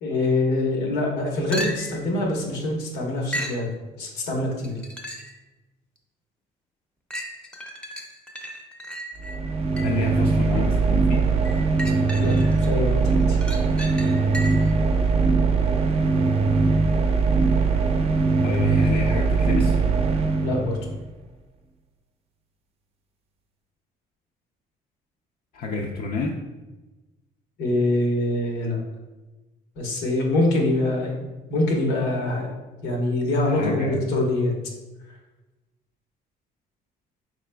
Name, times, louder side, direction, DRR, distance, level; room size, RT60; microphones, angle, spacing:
voice 1, 0.0-3.7 4.0-4.8 12.2-13.4 20.4-20.8 27.6-28.8 29.8-32.5 32.8-34.5, left 2 dB, 90° left, 0 dB, 1.1 m, -24 dB
sound 1, 1.5-2.1 3.3-3.7 4.6-5.4 6.0-6.1 7.1-10.1 11.4-12.7 13.1-14.8 18.5-18.6, equal, 5° left, 0.6 m, -35 dB
sound 2, 9.2-21.0, right 4 dB, 35° right, 0.5 m, -21 dB
voice 2, 9.8-11.2 18.4-19.8 25.5-26.3 33.5-34.0, left 2 dB, 55° left, -1 dB, 0.5 m, -29 dB
4.7 x 4.2 x 2.2 m, 1.1 s
cardioid pair, 110°, 17 cm